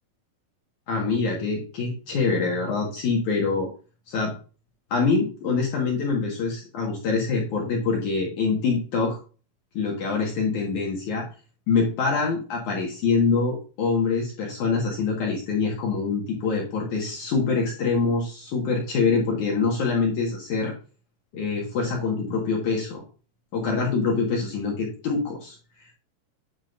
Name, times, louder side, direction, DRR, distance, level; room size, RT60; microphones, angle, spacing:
voice 1, 0.9-3.7 4.1-4.3 4.9-9.2 9.7-11.2 11.7-20.7 21.3-23.0 23.5-25.6, left 4 dB, 60° left, -2 dB, 2.3 m, -25 dB
9.6 x 6.2 x 2.5 m, 0.35 s
omnidirectional pair, 5.1 m